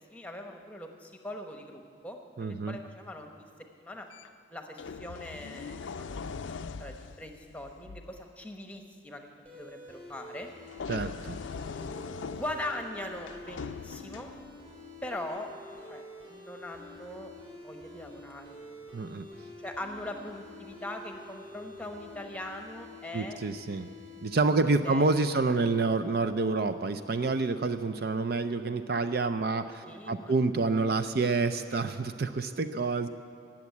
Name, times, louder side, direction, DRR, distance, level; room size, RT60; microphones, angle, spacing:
voice 1, 0.1-3.5 3.8-4.1 4.5-6.4 6.8-10.5 12.3-14.3 15.0-15.5 15.9-17.3 17.6-18.6 19.6-23.4 24.6-25.1 25.3-25.4 29.8-30.3, left 1 dB, 5° left, 4 dB, 1.0 m, -41 dB
voice 2, 2.4-2.8 10.9-11.4 18.9-19.3 23.1-23.9 24.2-33.1, right 3 dB, 55° right, 10 dB, 0.5 m, -28 dB
sound 1, 4.1-4.3 4.8-8.2 10.7-14.7 15.7-15.9, left 5 dB, 85° left, 0.5 m, -41 dB
sound 2, 9.4-24.4, left 2 dB, 30° right, 3.8 m, -48 dB
17.0 x 7.2 x 9.4 m, 2.2 s
head